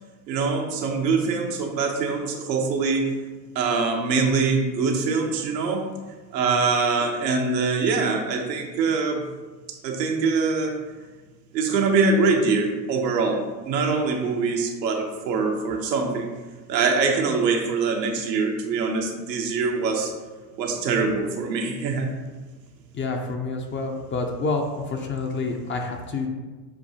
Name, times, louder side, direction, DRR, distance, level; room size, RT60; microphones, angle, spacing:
voice 1, 0.3-3.1 3.5-5.9 6.3-9.2 9.8-10.8 11.5-16.3 16.7-20.1 20.6-22.1, right 4 dB, 85° right, 2 dB, 0.8 m, -23 dB
voice 2, 22.9-26.3, left 3 dB, 25° left, 3 dB, 0.5 m, -28 dB
6.9 x 2.3 x 2.7 m, 1.3 s
hypercardioid pair, 80°, 49 cm